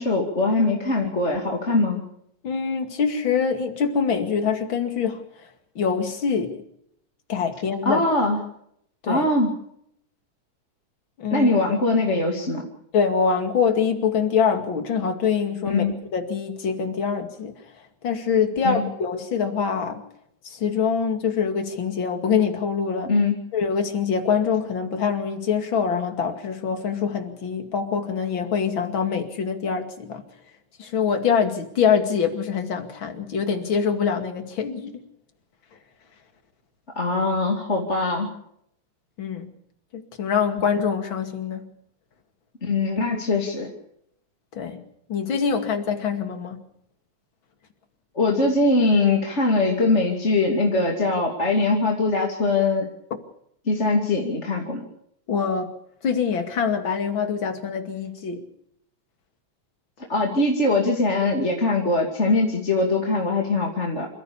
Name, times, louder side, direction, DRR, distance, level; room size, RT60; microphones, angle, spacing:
voice 1, 0.0-2.0 7.8-8.4 9.1-9.5 11.3-12.7 15.6-15.9 18.6-18.9 23.0-23.4 37.0-38.3 42.6-43.7 48.1-52.9 53.6-54.8 60.1-64.1, left 2 dB, 25° left, 2.6 m, -22 dB
voice 2, 2.4-5.2 5.8-6.6 7.3-8.0 9.0-9.3 11.2-11.5 12.9-15.9 16.1-17.5 18.0-20.0 20.4-23.1 23.5-30.2 30.8-35.0 39.2-39.5 39.9-41.6 44.5-44.8 45.1-46.6 55.3-55.7 56.0-58.4, left 6 dB, 45° left, 2.8 m, -24 dB
28.0 x 15.0 x 7.0 m
omnidirectional pair, 3.4 m